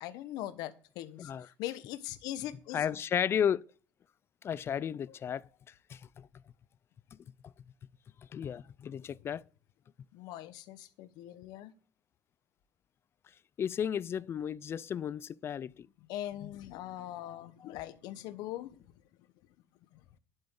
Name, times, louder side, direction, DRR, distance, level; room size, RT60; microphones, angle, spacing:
voice 1, 0.0-1.3 1.6-3.0 8.5-8.6 10.1-11.7 16.1-18.8 19.9-20.0, left 13 dB, 75° left, 1.1 m, -41 dB
voice 2, 2.7-3.6 4.4-5.5 5.9-6.3 8.3-9.4 13.6-15.9 17.2-17.4, left 8 dB, 35° left, 0.4 m, -33 dB
11.5 x 8.9 x 3.8 m
cardioid pair, 115°, 7 cm